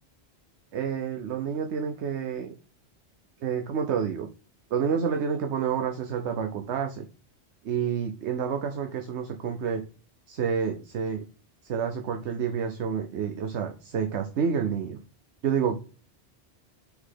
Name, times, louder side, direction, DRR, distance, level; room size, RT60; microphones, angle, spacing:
voice 1, 0.7-2.5 3.4-4.3 4.7-7.0 7.6-9.8 10.3-11.2 11.6-15.0 15.4-15.8, right 7 dB, 90° right, 5 dB, 1.1 m, -29 dB
5.9 x 4.0 x 5.6 m, 0.38 s
omnidirectional pair, 1.1 m